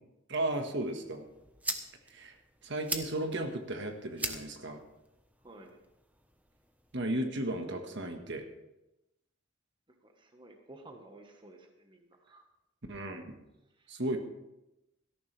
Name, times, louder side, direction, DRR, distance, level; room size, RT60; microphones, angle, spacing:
voice 1, 0.3-1.2 2.1-2.4 2.6-4.8 6.9-8.4 12.9-13.4 13.9-14.2, right 1 dB, 60° right, 5 dB, 1.5 m, -35 dB
sound 1, 1.0-7.0, right 2 dB, 10° right, 1.0 m, -42 dB
voice 2, 5.4-5.8 10.0-12.4 13.8-14.0, right 2 dB, 25° right, 4 dB, 1.3 m, -53 dB
17.5 x 13.5 x 3.4 m, 0.92 s
head